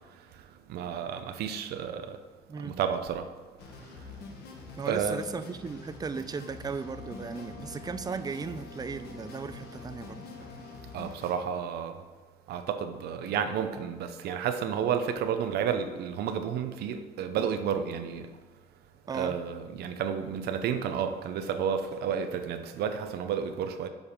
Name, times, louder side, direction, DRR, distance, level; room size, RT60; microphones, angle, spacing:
voice 1, 0.7-2.2 2.6-3.3 4.9-5.2 10.9-12.0 12.5-18.3 19.1-23.9, right 7 dB, 70° right, 8 dB, 0.7 m, -31 dB
sound 1, 3.6-11.3, left 3 dB, 75° left, 1.7 m, -46 dB
voice 2, 4.8-10.2 19.1-19.4, right 5 dB, 25° right, 11 dB, 0.5 m, -36 dB
Wind instrument woodwind instrument, 6.7-11.2, left 4 dB, 50° left, 1.8 m, -49 dB
7.3 x 5.4 x 6.5 m, 1.3 s
cardioid pair, 110°, 17 cm